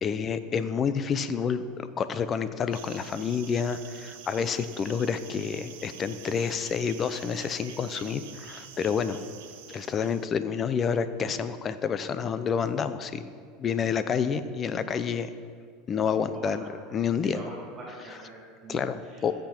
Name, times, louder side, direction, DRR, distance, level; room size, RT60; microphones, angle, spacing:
voice 1, 0.0-9.2 9.7-13.2 13.6-15.3 15.9-16.6 16.9-17.4 18.7-19.3, left 6 dB, 30° left, 12 dB, 0.6 m, -29 dB
sound 1, 2.7-10.3, right 8 dB, 85° right, 1.1 m, -47 dB
voice 2, 16.3-16.7 17.2-18.8 19.1-19.2, right 2 dB, 25° right, -4 dB, 3.4 m, -43 dB
14.5 x 7.8 x 4.4 m, 2.1 s
supercardioid pair, 115°, 0 cm